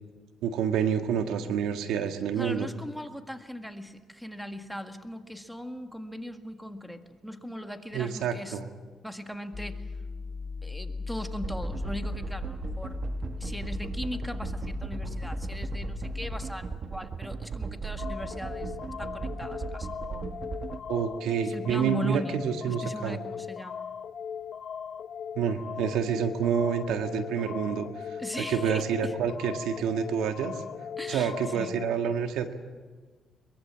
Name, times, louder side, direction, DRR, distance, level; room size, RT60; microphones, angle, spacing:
voice 1, 0.4-2.7 7.9-8.7 20.9-23.2 25.3-28.2 28.5-30.5 31.1-32.5, right 7 dB, 90° right, 6 dB, 1.7 m, -28 dB
voice 2, 2.3-8.6 9.0-9.9 10.6-13.0 13.4-20.3 21.4-23.9 28.2-29.1 31.0-31.8, equal, ahead, 6 dB, 1.8 m, -39 dB
sound 1, 9.5-16.4, left 4 dB, 30° left, 0.7 m, -37 dB
sound 2, 11.4-20.8, right 5 dB, 45° right, 1.2 m, -37 dB
sound 3, 18.0-31.9, left 7 dB, 60° left, 0.9 m, -39 dB
23.0 x 22.5 x 7.4 m, 1.4 s
cardioid pair, 90°, 0 cm